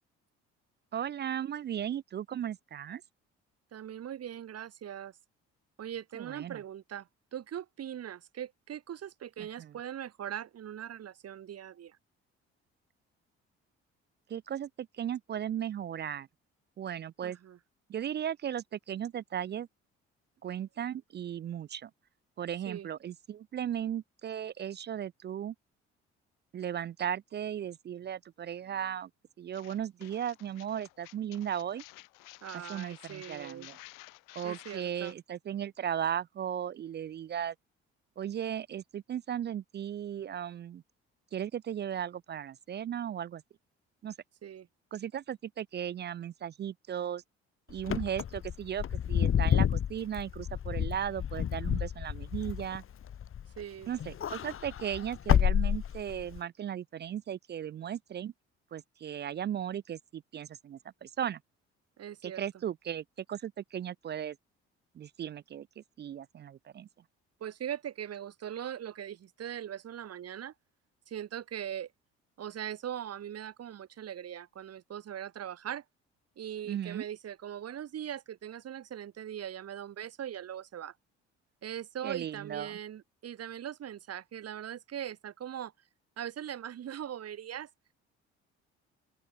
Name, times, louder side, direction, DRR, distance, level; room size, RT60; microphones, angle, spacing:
voice 1, 0.9-3.0 6.1-6.6 9.6-9.7 14.3-16.3 16.8-17.4 17.9-19.7 20.4-21.9 22.4-25.5 26.5-29.1 29.4-31.8 32.5-33.8 34.4-37.5 38.2-40.8 41.3-43.4 44.0-44.1 44.9-47.2 47.7-52.8 53.9-58.3 58.7-61.4 62.2-64.4 65.0-66.9 76.7-77.0 82.0-82.8, right 9 dB, 35° right, 0.4 m, -36 dB
voice 2, 3.7-5.2 5.8-12.0 17.2-17.6 22.7-22.9 32.4-33.7 34.4-35.2 44.4-44.7 53.6-53.9 62.0-62.4 67.4-70.5 71.1-71.9 72.4-75.8 76.4-80.9 81.6-85.7 86.2-87.7, right 10 dB, 50° right, 1.4 m, -40 dB
sound 1, 29.5-35.1, left 25 dB, 75° left, 5.2 m, -52 dB
Wind / Car, 47.8-53.6 53.9-56.4, left 9 dB, 40° left, 1.0 m, -29 dB
open air
hypercardioid pair, 55°, 32 cm